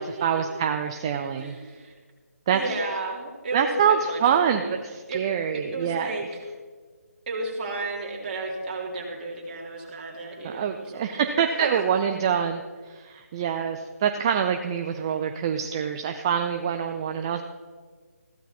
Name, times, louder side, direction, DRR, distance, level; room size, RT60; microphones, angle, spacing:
voice 1, 0.0-1.6 2.5-2.6 3.5-6.1 10.4-12.6 12.9-17.4, right 8 dB, 20° right, 6 dB, 0.4 m, -25 dB
voice 2, 1.4-1.9 2.5-4.7 5.1-5.2 5.7-6.5 7.3-11.3 11.6-11.8, right 2 dB, 35° right, -2 dB, 3.0 m, -33 dB
15.0 x 12.5 x 4.3 m, 1.5 s
figure-of-eight pair, 165°, 8 cm